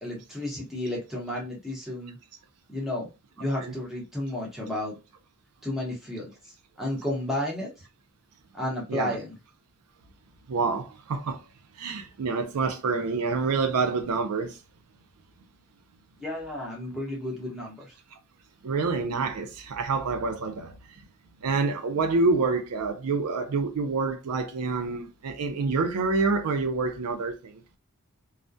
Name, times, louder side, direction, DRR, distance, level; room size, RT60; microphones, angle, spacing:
voice 1, 0.0-2.2 2.7-3.1 3.4-4.9 5.6-7.9 8.5-9.4 16.2-18.0, left 1 dB, ahead, 0.8 m, -32 dB
voice 2, 10.5-11.4 11.8-14.6 18.6-21.0 21.4-27.6, right 4 dB, 80° right, 0.4 m, -27 dB
2.3 x 2.1 x 2.5 m
head